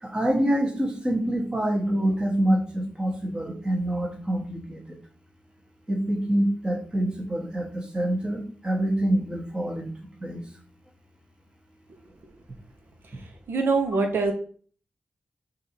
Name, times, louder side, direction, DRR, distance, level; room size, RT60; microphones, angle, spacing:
voice 1, 0.0-5.0 5.9-9.9 10.2-10.4, right 1 dB, 20° right, 0 dB, 1.3 m, -26 dB
voice 2, 13.5-14.3, right 3 dB, 75° right, 4 dB, 1.0 m, -23 dB
4.4 x 2.7 x 4.4 m, 0.44 s
wide cardioid pair, 95°, 4 cm